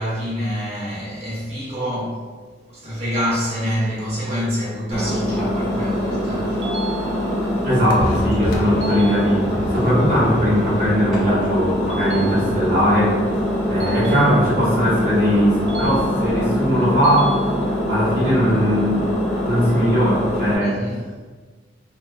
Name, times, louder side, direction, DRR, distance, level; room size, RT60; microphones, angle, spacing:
voice 1, 0.0-2.2 2.7-6.7 20.6-21.0, equal, 35° right, -8 dB, 1.0 m, -26 dB
Engine, 4.9-20.6, equal, ahead, 0.9 m, -23 dB
sound 1, 6.6-7.6 8.8-9.8 11.9-12.9 13.8-14.9 15.7-16.6 17.0-18.0, right 2 dB, 90° right, 0.4 m, -34 dB
voice 2, 7.6-9.5 9.7-13.1 13.7-17.4 17.9-19.1 19.4-20.8, equal, 55° right, -9 dB, 1.3 m, -19 dB
sound 2, 7.7-16.6, equal, 55° left, 0.4 m, -31 dB
2.9 x 2.2 x 2.3 m, 1.4 s
head